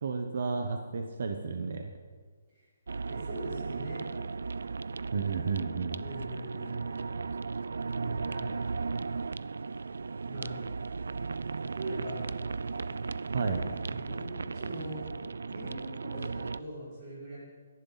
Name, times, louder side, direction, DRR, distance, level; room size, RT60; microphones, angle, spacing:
voice 1, 0.0-1.9 5.1-6.0 13.3-13.6, right 5 dB, 45° right, 4 dB, 1.0 m, -32 dB
sound 1, 2.9-16.6, right 4 dB, 90° right, 0.4 m, -36 dB
voice 2, 3.0-4.1 6.0-7.3 7.9-8.8 10.2-10.6 11.5-12.3 12.8-12.9 13.9-15.0 15.5-17.4, right 1 dB, 20° right, -8 dB, 5.8 m, -42 dB
24.0 x 11.0 x 4.1 m, 1.5 s
hypercardioid pair, 180°, 0 cm